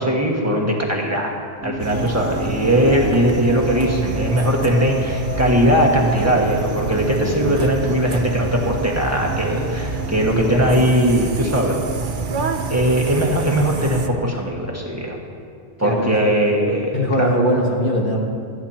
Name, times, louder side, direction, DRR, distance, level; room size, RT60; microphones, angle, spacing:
voice 1, 0.0-1.3 1.6-11.8 12.7-15.2 15.8-17.3, equal, 15° right, -2 dB, 1.6 m, -19 dB
sound 1, 1.6-13.7, left 1 dB, 15° left, 0.4 m, -34 dB
sound 2, 1.8-14.1, right 4 dB, 50° right, 0.9 m, -27 dB
voice 2, 7.2-7.6 15.8-16.1 16.9-18.2, equal, 50° left, -2 dB, 1.5 m, -21 dB
20.0 x 14.0 x 2.9 m, 2.3 s
omnidirectional pair, 1.1 m